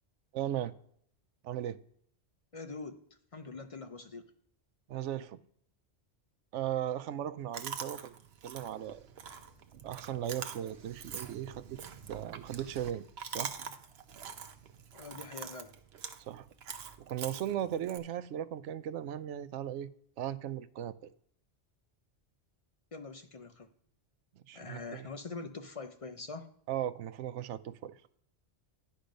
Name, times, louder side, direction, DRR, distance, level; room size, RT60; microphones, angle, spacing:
voice 1, 0.3-0.7 1.4-1.8 4.9-5.4 6.5-8.1 8.4-9.0 9.8-11.8 12.1-13.5 16.2-16.5 17.1-19.9 20.2-21.1 24.5-25.1 26.7-27.9, right 11 dB, 90° right, 0.9 m, -37 dB
voice 2, 2.5-4.3 14.9-15.7 22.9-23.7 24.5-26.5, left 3 dB, 40° left, 0.6 m, -44 dB
Chewing mastication, 7.5-18.0, right 7 dB, 65° right, 1.0 m, -45 dB
10.5 x 5.3 x 5.2 m
omnidirectional pair, 1.2 m